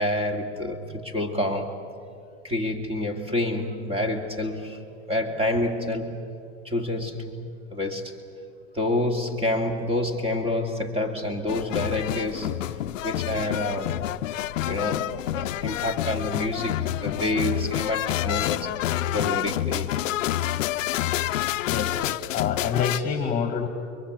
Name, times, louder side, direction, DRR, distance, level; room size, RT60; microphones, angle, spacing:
voice 1, 0.0-1.8 2.4-4.8 5.1-6.2 6.6-8.1 8.7-14.0 14.6-18.7 19.1-20.0, left 1 dB, 15° right, 2.8 m, -28 dB
sound 1, 11.5-23.0, left 14 dB, 80° left, 0.8 m, -28 dB
voice 2, 21.7-23.7, left 6 dB, 20° left, 2.1 m, -28 dB
30.0 x 23.5 x 8.3 m
supercardioid pair, 135°, 38 cm